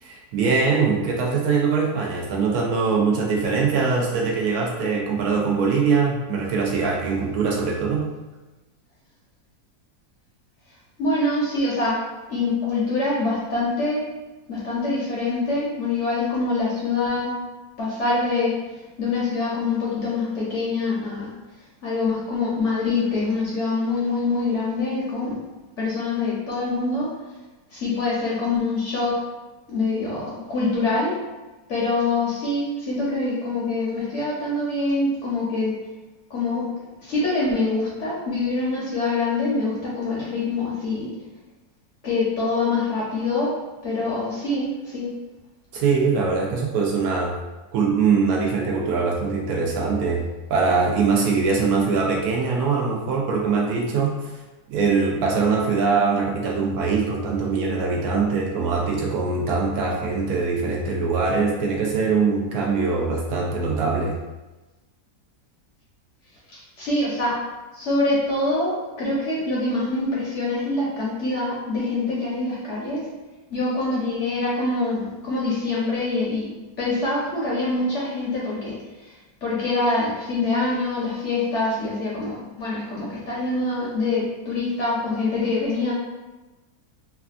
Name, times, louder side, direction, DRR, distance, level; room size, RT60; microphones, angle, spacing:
voice 1, 0.0-8.1 45.7-47.3 47.7-50.2 50.5-54.2 54.7-64.2, right 4 dB, 70° right, -2 dB, 1.0 m, -22 dB
voice 2, 11.0-12.0 12.3-14.1 14.5-17.3 17.8-21.3 21.8-25.4 25.8-27.1 27.7-29.2 29.7-31.2 31.7-35.8 36.3-36.7 37.0-41.1 42.0-43.6 43.8-45.1 66.5-67.4 67.7-73.0 73.5-76.5 76.8-85.9, left 3 dB, 60° left, -6 dB, 0.8 m, -25 dB
3.3 x 2.3 x 2.4 m, 1.1 s
omnidirectional pair, 1.7 m